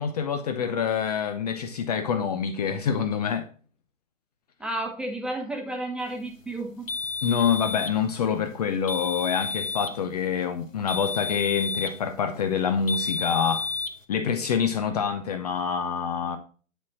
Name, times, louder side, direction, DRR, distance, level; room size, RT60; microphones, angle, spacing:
voice 1, 0.0-3.5 7.2-13.7 14.1-16.4, left 7 dB, 30° left, 0.7 m, -26 dB
voice 2, 4.6-6.9, right 1 dB, ahead, 1.1 m, -32 dB
sound 1, 6.9-8.0 8.9-10.0 10.9-12.0 12.9-14.0, left 4 dB, 90° left, 1.8 m, -31 dB
10.5 x 4.2 x 6.0 m
figure-of-eight pair, 140°, 39 cm